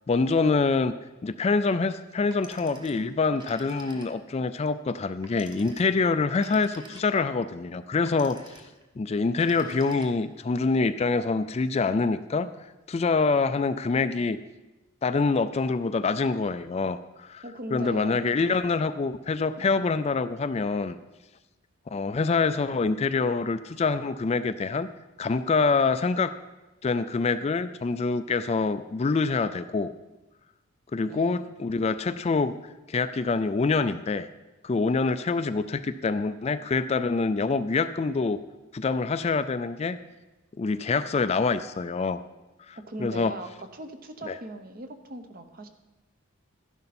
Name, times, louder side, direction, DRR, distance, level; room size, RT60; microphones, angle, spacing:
voice 1, 0.1-0.9 1.2-8.4 9.0-12.5 12.9-14.4 15.0-17.4 17.7-21.0 21.9-24.9 25.2-26.3 26.8-29.9 30.9-32.5 32.9-34.3 34.6-38.4 38.7-40.0 40.6-42.2 42.7-43.3 44.3-44.4, left 4 dB, 30° left, 12 dB, 0.3 m, -25 dB
Telephone, 2.2-4.4 5.2-7.4 8.1-8.9 9.3-10.4, right 1 dB, 20° right, 1.1 m, -49 dB
voice 2, 17.4-18.2 19.6-19.8 31.0-31.4 42.7-45.7, right 2 dB, 45° right, 7 dB, 0.9 m, -39 dB
12.5 x 10.5 x 4.3 m, 1.0 s
head